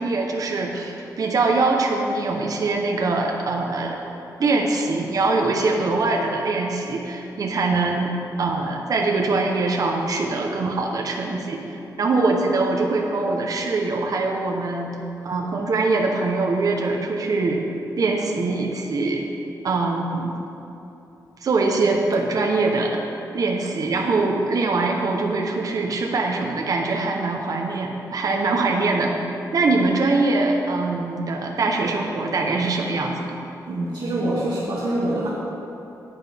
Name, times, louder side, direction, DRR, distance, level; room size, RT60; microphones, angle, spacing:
voice 1, 0.0-4.0 4.4-8.1 8.4-11.6 12.0-14.9 15.2-17.6 18.0-19.2 19.6-20.3 21.4-23.0 23.3-29.2 29.5-33.4, right 3 dB, 55° right, 0 dB, 0.8 m, -23 dB
voice 2, 33.6-35.3, right 1 dB, 80° right, -8 dB, 1.7 m, -25 dB
11.0 x 8.8 x 3.4 m, 2.9 s
wide cardioid pair, 175°, 7 cm